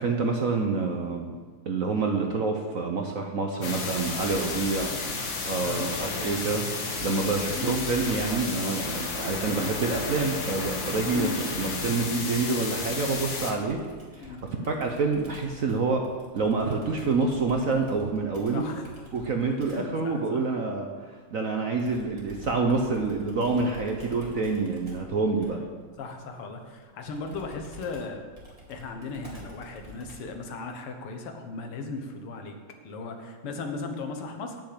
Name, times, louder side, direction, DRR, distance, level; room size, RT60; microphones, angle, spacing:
voice 1, 0.0-1.4 1.7-4.9 5.2-13.8 14.1-14.4 14.7-16.0 16.3-18.6 19.1-25.6, right 4 dB, 55° right, 3 dB, 0.9 m, -27 dB
sound 1, 3.6-13.5, left 4 dB, 60° left, 2.1 m, -32 dB
voice 2, 5.6-6.2 7.5-7.8 9.5-9.7 11.1-11.5 14.2-14.7 17.0-17.4 18.5-19.0 19.7-20.4 23.7-24.2 25.4-25.7 26.0-28.2 28.7-32.6 32.8-34.6, left 3 dB, 90° left, 4 dB, 2.2 m, -37 dB
Computer keyboard, 13.7-20.0 21.8-30.4, equal, 15° right, 2.4 m, -48 dB
9.2 x 7.3 x 7.8 m, 1.5 s
omnidirectional pair, 2.4 m